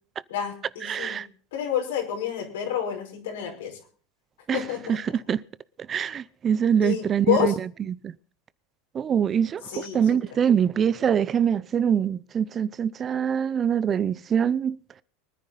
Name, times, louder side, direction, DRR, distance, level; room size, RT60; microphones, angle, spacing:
voice 1, 0.3-1.2 1.5-3.8 4.5-5.0 6.8-7.6 9.7-10.2, left 9 dB, 85° left, 5.2 m, -29 dB
voice 2, 0.8-1.3 4.5-4.6 4.9-5.4 5.9-7.5 7.9-8.1 8.9-14.8, right 8 dB, 30° right, 0.6 m, -24 dB
24.0 x 9.8 x 4.1 m
supercardioid pair, 120°, 0 cm